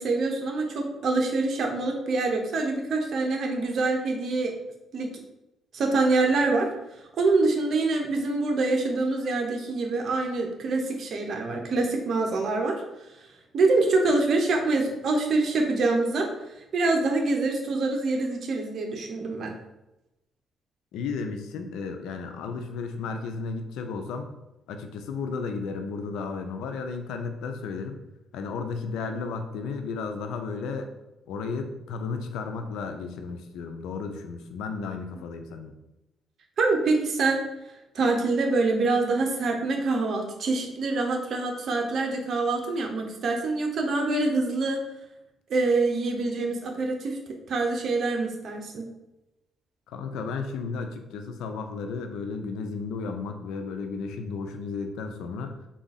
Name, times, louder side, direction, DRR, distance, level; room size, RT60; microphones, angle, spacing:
voice 1, 0.0-4.5 4.9-5.1 5.7-6.7 7.2-12.8 13.5-16.3 16.7-19.5 36.6-37.4 37.9-44.8 45.5-47.2 47.5-48.9, right 3 dB, 60° right, 2 dB, 0.8 m, -25 dB
voice 2, 20.9-24.3 24.7-28.0 28.3-30.9 31.3-35.7 49.9-55.6, left 4 dB, 90° left, 6 dB, 0.5 m, -33 dB
3.7 x 2.4 x 4.0 m, 0.94 s
cardioid pair, 90°, 0 cm